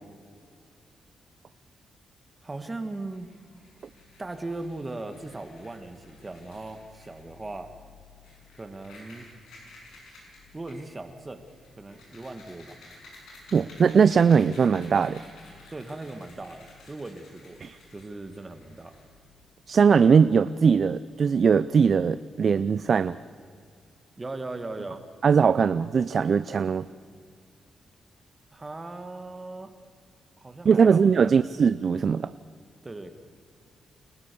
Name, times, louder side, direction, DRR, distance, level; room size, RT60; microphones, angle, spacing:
voice 1, 2.4-3.3 4.2-7.7 8.6-9.3 10.5-11.4 11.8-12.8 15.7-18.9 24.2-25.0 28.5-29.7 30.4-31.4 32.8-33.1, right 2 dB, 25° right, 8 dB, 1.8 m, -38 dB
sound 1, 3.1-19.4, left 3 dB, 85° left, 6.7 m, -53 dB
voice 2, 13.5-15.2 17.6-17.8 19.7-23.2 25.2-26.8 30.6-32.3, right 6 dB, 55° right, 15 dB, 0.5 m, -20 dB
29.0 x 14.0 x 7.0 m, 2.2 s
cardioid pair, 65°, 0 cm